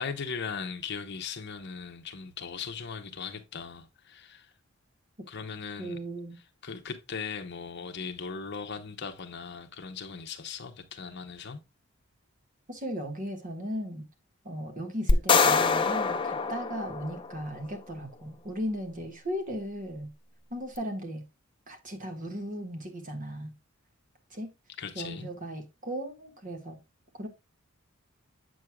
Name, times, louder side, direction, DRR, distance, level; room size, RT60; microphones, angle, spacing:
voice 1, 0.0-4.5 5.3-6.0 6.6-11.6 24.8-25.3, left 5 dB, 55° left, 0.8 m, -38 dB
voice 2, 5.8-6.4 12.7-14.1 14.4-20.1 20.5-21.2 21.7-23.5 24.3-24.5 24.9-26.8 27.2-27.3, equal, 40° right, 1.6 m, -36 dB
sound 1, 15.1-17.5, left 4 dB, 25° left, 0.6 m, -24 dB
7.8 x 6.2 x 2.2 m
head